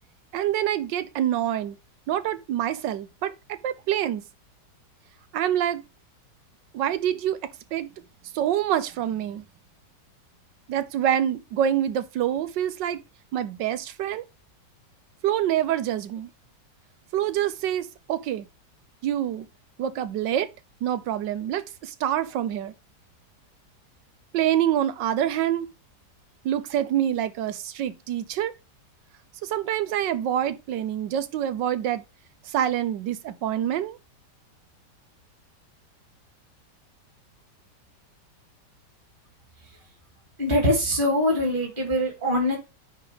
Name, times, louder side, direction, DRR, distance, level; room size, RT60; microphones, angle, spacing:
voice 1, 0.3-1.8 2.1-4.2 5.3-5.8 6.7-7.9 8.3-9.4 10.7-13.0 13.3-14.2 15.2-16.3 17.1-18.5 19.0-19.5 19.8-20.5 20.8-22.7 24.3-25.7 26.4-28.5 29.4-32.0 32.5-34.0, right 11 dB, 90° right, 1.5 m, -26 dB
voice 2, 40.4-42.6, left 1 dB, 30° right, 2.9 m, -23 dB
9.8 x 3.4 x 4.9 m
omnidirectional pair, 1.9 m